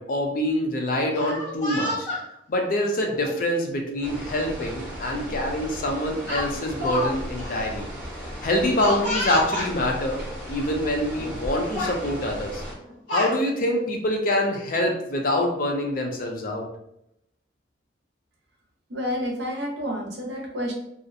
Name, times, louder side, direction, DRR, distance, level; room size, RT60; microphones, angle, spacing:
voice 1, 0.0-2.1 2.5-7.9 8.4-10.2 10.5-12.6 13.1-16.7, left 1 dB, 50° left, 2 dB, 0.4 m, -25 dB
Speech, 1.1-2.2 3.1-3.3 4.6-4.7 5.1-5.3 6.3-7.1 7.4-7.5 8.8-9.7 10.6-10.7 11.1-11.4 11.7-12.0 12.8-13.3, left 1 dB, 90° left, 1.2 m, -29 dB
sound 1, 4.0-12.7, equal, 10° right, 0.8 m, -36 dB
voice 2, 18.9-20.7, equal, 65° right, 0 dB, 0.6 m, -29 dB
2.4 x 2.0 x 2.6 m, 0.78 s
head